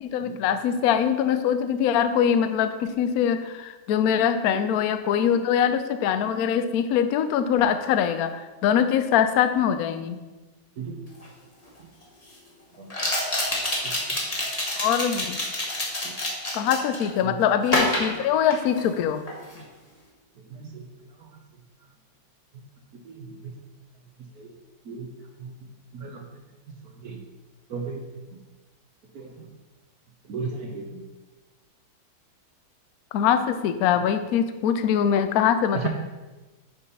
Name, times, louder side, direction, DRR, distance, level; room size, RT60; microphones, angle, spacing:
voice 1, 0.0-10.2 14.8-15.4 16.5-19.2 33.1-35.9, left 8 dB, 75° left, 10 dB, 0.8 m, -23 dB
sound 1, 11.2-11.3 12.9-17.1 17.6-19.0 19.3-19.6, left 1 dB, 20° left, 1.3 m, -27 dB
voice 2, 20.5-20.8 23.0-23.3 24.4-24.5 24.9-25.1 25.4-25.5 25.9-26.2 27.0-27.2 27.7-28.0 29.1-29.5 30.3-31.0 35.7-35.9, right 5 dB, 55° right, 3 dB, 1.2 m, -35 dB
6.9 x 5.0 x 5.6 m, 1.2 s
omnidirectional pair, 2.2 m